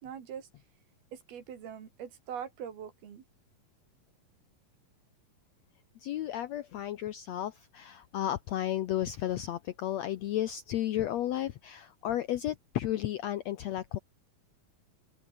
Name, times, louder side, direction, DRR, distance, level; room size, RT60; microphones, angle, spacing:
voice 1, 0.0-0.5 1.1-3.2, right 8 dB, 75° right, 5.0 m, -42 dB
voice 2, 6.0-14.0, left 12 dB, 85° left, 1.5 m, -33 dB
open air
omnidirectional pair, 4.4 m